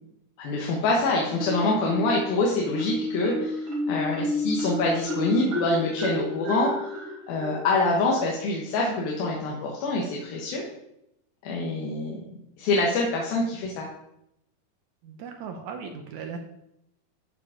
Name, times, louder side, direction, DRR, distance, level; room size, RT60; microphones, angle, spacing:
voice 1, 0.4-10.6 11.4-13.9, left 2 dB, 80° left, -3 dB, 3.2 m, -26 dB
Marimba xylophone, 1.4-2.3 2.7-8.3, left 1 dB, 40° right, 2.6 m, -30 dB
voice 2, 15.0-16.4, right 6 dB, 75° right, 4 dB, 1.8 m, -38 dB
14.0 x 5.0 x 5.0 m, 0.81 s
omnidirectional pair, 4.2 m